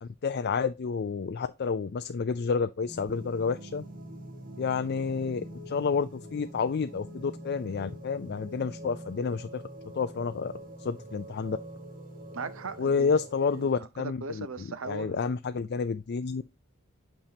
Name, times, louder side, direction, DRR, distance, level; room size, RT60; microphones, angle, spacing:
voice 1, 0.0-3.8 4.6-9.6 9.9-10.5 10.8-11.6 12.8-14.5 14.9-16.4, left 5 dB, 50° left, 0.4 m, -30 dB
sound 1, 2.9-13.7, right 1 dB, 40° right, 1.3 m, -44 dB
voice 2, 12.3-13.1 13.4-15.2, right 4 dB, 60° right, 0.7 m, -39 dB
8.8 x 5.6 x 2.8 m
head